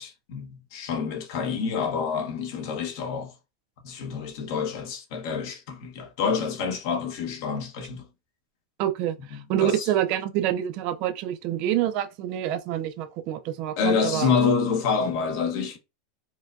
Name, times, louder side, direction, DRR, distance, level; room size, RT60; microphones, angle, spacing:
voice 1, 0.0-3.3 3.8-8.1 9.3-9.9 13.8-15.8, left 5 dB, 55° left, 0.8 m, -27 dB
voice 2, 8.8-14.3, right 11 dB, 40° right, 0.4 m, -27 dB
4.5 x 2.2 x 2.3 m
supercardioid pair, 160°, 2 cm